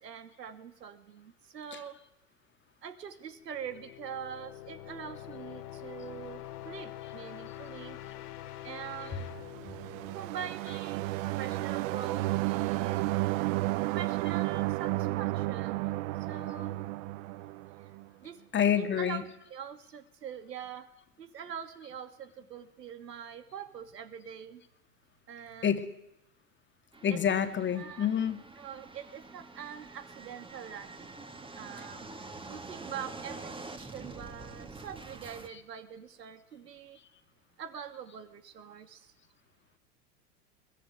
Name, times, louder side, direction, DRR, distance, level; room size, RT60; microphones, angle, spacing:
voice 1, 0.0-2.0 2.8-8.0 8.6-9.3 10.1-13.1 13.8-15.9 16.2-16.8 18.2-18.4 18.8-19.2 19.5-20.9 21.2-24.6 25.3-25.8 27.1-27.2 27.7-28.1 28.6-31.3 31.5-32.1 32.5-37.0 37.6-39.1, right 8 dB, 85° right, 9 dB, 2.5 m, -44 dB
sound 1, 3.4-11.1, left 13 dB, 75° left, 2.6 m, -45 dB
sound 2, 9.3-18.0, right 18 dB, 55° right, 0.9 m, -32 dB
voice 2, 18.5-19.2 25.6-25.9 27.0-28.4 31.8-31.9, left 8 dB, 25° left, 9 dB, 2.2 m, -28 dB
sound 3, 26.9-35.5, right 3 dB, 10° right, 2.4 m, -46 dB
22.0 x 19.0 x 9.6 m, 0.87 s
hypercardioid pair, 105°, 47 cm